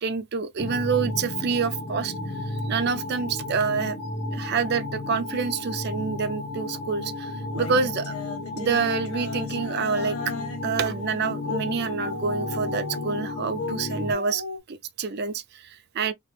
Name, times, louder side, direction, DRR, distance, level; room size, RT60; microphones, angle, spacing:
voice 1, 0.0-2.1 2.5-4.0 4.3-8.2 8.6-10.3 10.6-14.4 14.7-16.1, right 5 dB, 50° right, 0.5 m, -27 dB
sound 1, 0.6-14.1, left 2 dB, 70° left, 1.3 m, -33 dB
sound 2, 7.5-10.7 11.4-11.6 11.9-13.8 14.1-14.6, left 3 dB, 85° left, 0.8 m, -35 dB
3.0 x 2.4 x 3.2 m
head